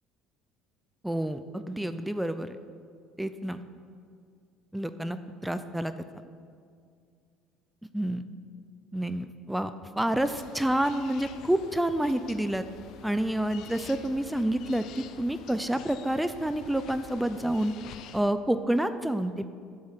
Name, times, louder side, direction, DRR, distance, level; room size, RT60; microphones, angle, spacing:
voice 1, 1.0-2.6 3.2-3.6 4.7-5.9 7.9-8.2 8.9-12.6 13.0-17.7 18.1-19.5, right 1 dB, 5° right, 11 dB, 0.5 m, -28 dB
sound 1, 10.2-18.2, left 8 dB, 65° left, 0.6 m, -48 dB
9.4 x 7.6 x 8.3 m, 2.2 s
supercardioid pair, 95°, 0 cm